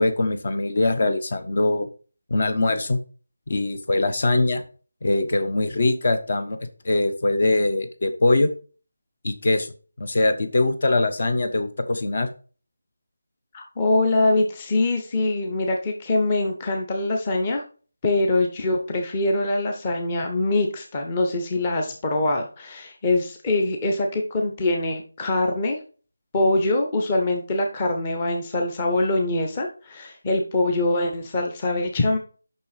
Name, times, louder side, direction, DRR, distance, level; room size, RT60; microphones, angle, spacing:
voice 1, 0.0-1.9 2.3-3.0 3.5-4.6 5.0-8.5 9.2-12.3, left 2 dB, 45° left, 9 dB, 1.1 m, -22 dB
voice 2, 13.5-17.6 18.0-25.8 26.3-32.2, left 2 dB, 20° left, 3 dB, 0.9 m, -23 dB
6.8 x 5.9 x 5.0 m, 0.37 s
figure-of-eight pair, 175°, 0 cm